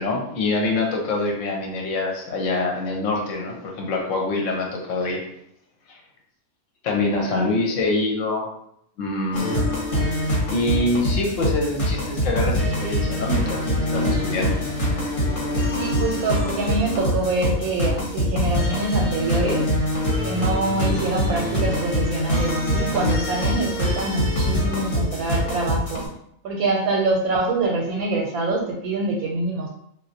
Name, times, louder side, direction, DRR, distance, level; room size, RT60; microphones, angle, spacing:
voice 1, 0.0-5.3 5.9-6.0 6.8-8.5 9.0-9.6 10.5-14.6, left 2 dB, 70° left, 0 dB, 0.9 m, -25 dB
sound 1, 9.3-26.1, equal, 40° left, 0.9 m, -24 dB
voice 2, 15.7-19.6 20.2-26.0 26.4-29.7, right 2 dB, 85° right, 0 dB, 1.0 m, -25 dB
3.2 x 2.4 x 2.7 m, 0.73 s
omnidirectional pair, 1.5 m